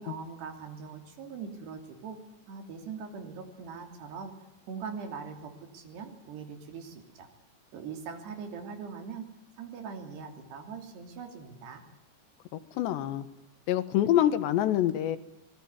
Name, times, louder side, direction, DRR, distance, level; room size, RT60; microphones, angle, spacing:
voice 1, 0.0-2.2 2.5-4.3 4.7-7.3 7.7-9.3 9.6-11.8, right 5 dB, 70° right, 6 dB, 5.0 m, -41 dB
voice 2, 12.8-13.3 13.7-15.2, left 11 dB, 85° left, 12 dB, 3.6 m, -25 dB
25.0 x 20.5 x 9.5 m, 0.94 s
omnidirectional pair, 4.9 m